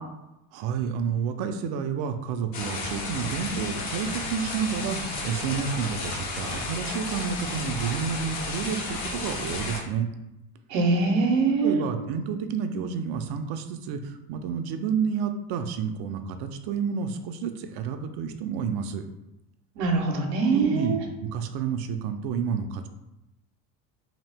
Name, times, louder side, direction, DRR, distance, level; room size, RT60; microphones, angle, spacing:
voice 1, 0.5-10.1 11.6-19.0 20.4-22.9, right 7 dB, 55° right, 7 dB, 0.5 m, -30 dB
sound 1, 2.5-9.8, left 3 dB, 65° left, 1.1 m, -33 dB
voice 2, 10.7-11.8 19.8-21.0, right 3 dB, 85° right, 1 dB, 0.8 m, -23 dB
2.9 x 2.4 x 3.4 m, 0.92 s
hypercardioid pair, 80°, 48 cm